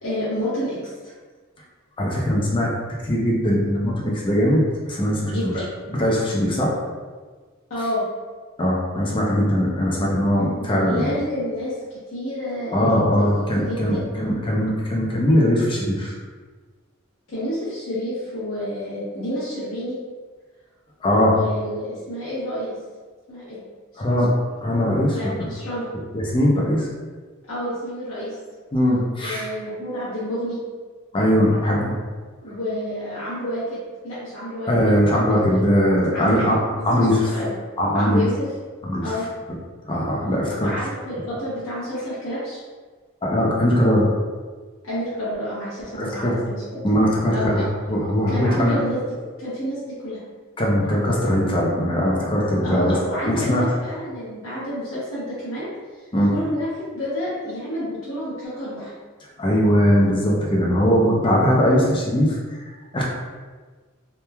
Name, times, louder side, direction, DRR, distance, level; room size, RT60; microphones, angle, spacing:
voice 1, 0.0-0.8 5.3-5.6 7.7-8.0 10.4-14.1 17.3-20.0 21.1-22.8 23.3-23.6 23.9-24.0 25.1-25.9 27.4-28.3 29.2-30.6 32.4-34.7 35.3-35.6 36.1-36.4 36.8-37.5 37.9-38.5 39.0-39.2 40.6-42.6 44.8-46.8 47.3-47.5 48.3-49.0 49.4-50.2 52.6-55.7 56.0-56.7 56.9-58.9, equal, 65° left, -10 dB, 0.8 m, -29 dB
voice 2, 2.0-2.7 3.0-5.6 6.0-6.7 8.6-11.1 12.7-16.1 21.0-21.3 24.0-24.3 24.6-25.4 26.1-26.9 28.7-29.5 31.1-31.9 34.7-36.6 36.8-37.3 37.8-38.2 38.8-39.0 39.9-40.7 43.2-44.1 46.0-46.3 46.8-48.9 50.6-53.0 53.2-53.8 56.1-56.3 59.4-62.6 62.9-63.0, equal, 25° left, -3 dB, 0.4 m, -20 dB
3.0 x 2.2 x 2.2 m, 1.4 s
head